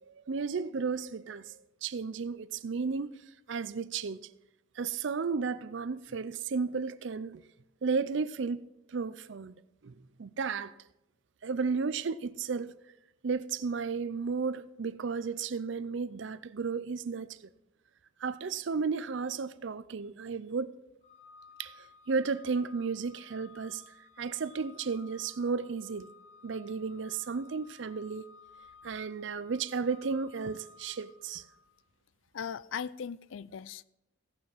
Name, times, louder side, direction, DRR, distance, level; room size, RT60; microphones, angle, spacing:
voice 1, 0.1-3.1 3.5-4.2 4.8-7.4 7.8-9.6 9.8-10.7 11.4-12.8 13.2-17.4 18.2-20.7 21.6-23.8 24.2-26.1 26.4-28.3 28.8-31.4, right 5 dB, 65° right, 0.5 m, -33 dB
Organ, 21.0-31.8, left 4 dB, 30° left, 1.6 m, -56 dB
voice 2, 32.3-33.8, left 7 dB, 75° left, 0.4 m, -38 dB
16.5 x 6.0 x 5.7 m
head